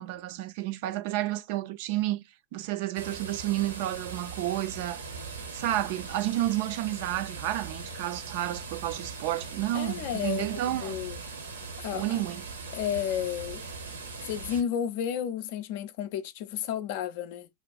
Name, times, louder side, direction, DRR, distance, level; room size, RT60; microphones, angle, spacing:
voice 1, 0.0-2.2 2.5-5.0 5.5-11.0 11.9-12.4, right 15 dB, 50° right, 0.3 m, -31 dB
sound 1, 2.9-14.6, right 4 dB, 70° right, 0.8 m, -40 dB
voice 2, 9.7-11.2 11.8-12.2 12.7-13.6 14.3-17.5, left 9 dB, 50° left, 0.4 m, -32 dB
3.6 x 2.2 x 2.3 m
figure-of-eight pair, 90°, 0 cm